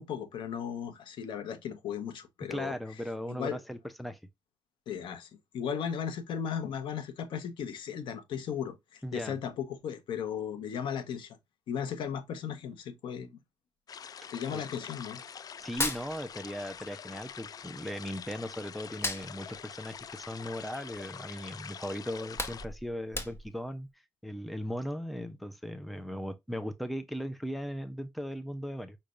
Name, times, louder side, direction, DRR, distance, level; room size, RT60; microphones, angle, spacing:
voice 1, 0.0-2.7 3.3-3.6 4.9-11.4 11.7-13.4 14.3-15.2, left 8 dB, 85° left, 1.1 m, -36 dB
voice 2, 2.5-4.2 9.0-9.4 14.5-14.6 15.6-23.9 24.2-29.0, equal, ahead, 0.7 m, -38 dB
sound 1, 13.9-22.7, left 7 dB, 50° left, 0.4 m, -45 dB
Hands, 15.6-16.9 17.1-18.4 18.8-21.2 21.6-21.7 22.1-23.7, left 2 dB, 30° left, 1.1 m, -37 dB
5.7 x 3.3 x 2.5 m
cardioid pair, 95°, 8 cm